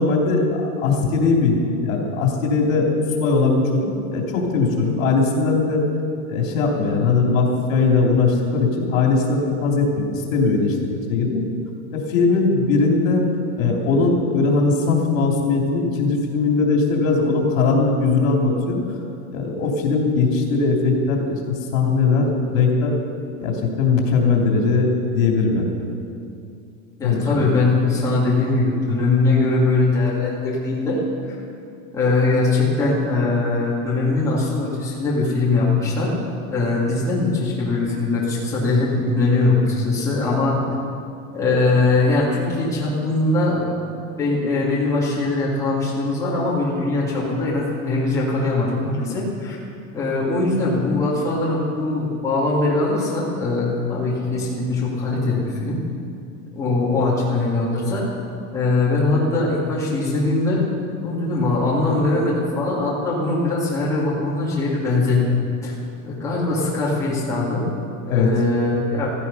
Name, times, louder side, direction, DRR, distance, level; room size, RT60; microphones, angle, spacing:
voice 1, 0.0-5.8 6.3-10.8 11.1-11.4 11.9-13.2 13.6-18.8 19.3-22.9 23.4-25.9 27.0-27.5 68.1-68.3, left 4 dB, 75° left, 0 dB, 3.2 m, -20 dB
voice 2, 27.0-31.0 31.9-36.2 36.5-40.6 41.3-43.7 44.2-49.6 49.9-55.8 56.5-58.1 58.5-60.6 61.0-65.2 65.6-65.7 66.0-67.7 68.1-69.1, left 3 dB, 10° left, -7 dB, 2.6 m, -21 dB
15.5 x 14.0 x 5.5 m, 2.5 s
supercardioid pair, 180°, 40 cm